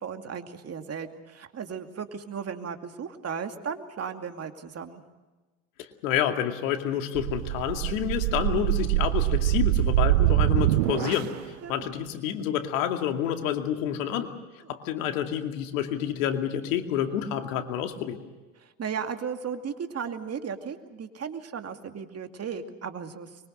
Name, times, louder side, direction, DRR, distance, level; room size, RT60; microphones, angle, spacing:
voice 1, 0.0-5.0 11.6-11.9 18.6-23.3, right 6 dB, 40° right, 6 dB, 2.5 m, -36 dB
voice 2, 5.8-14.3 14.7-18.2, left 9 dB, 80° left, 6 dB, 2.5 m, -29 dB
sound 1, 7.1-11.5, right 16 dB, 85° right, 0.7 m, -24 dB
24.5 x 23.0 x 6.5 m, 1.2 s
hypercardioid pair, 75°, 39 cm